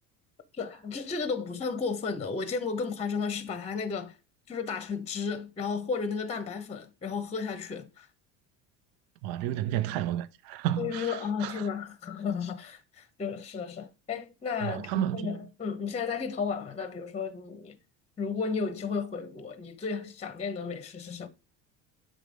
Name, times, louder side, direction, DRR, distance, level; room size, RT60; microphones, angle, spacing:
voice 1, 0.5-4.2 4.5-8.1 10.8-17.8 18.2-21.3, left 5 dB, 15° left, 0.8 m, -33 dB
voice 2, 9.2-11.5 14.6-15.3, right 12 dB, 70° right, 0.6 m, -31 dB
7.6 x 3.3 x 5.1 m
supercardioid pair, 115°, 36 cm